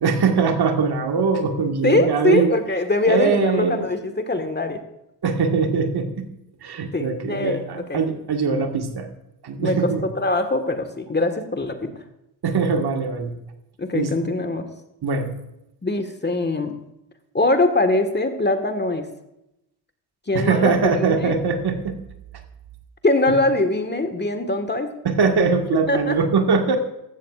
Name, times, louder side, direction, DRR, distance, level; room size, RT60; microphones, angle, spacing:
voice 1, 0.0-2.5 3.1-3.9 5.2-6.3 6.6-9.1 9.4-10.0 12.4-13.4 13.9-14.3 15.0-15.3 20.3-21.9 23.3-23.4 25.0-26.8, right 5 dB, 50° right, 4 dB, 1.8 m, -21 dB
voice 2, 1.8-4.8 6.9-8.0 9.6-11.9 13.8-14.7 15.8-16.8 17.3-19.1 20.3-21.4 23.0-24.9 25.7-26.2, left 2 dB, 20° left, 6 dB, 1.6 m, -22 dB
14.5 x 13.5 x 2.5 m, 0.86 s
hypercardioid pair, 55°, 49 cm